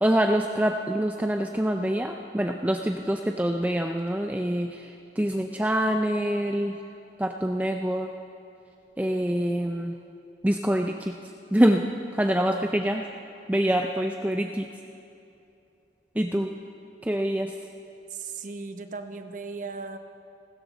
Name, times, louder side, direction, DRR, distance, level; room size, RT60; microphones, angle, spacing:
voice 1, 0.0-6.7 7.2-8.1 9.0-9.9 10.4-11.1 11.5-11.8 12.1-13.1 13.5-14.7 16.2-16.5 17.0-17.5, equal, 10° right, 3 dB, 0.5 m, -25 dB
voice 2, 12.3-12.7 18.2-20.0, right 3 dB, 45° right, 8 dB, 0.9 m, -37 dB
27.0 x 13.5 x 4.0 m, 2.7 s
head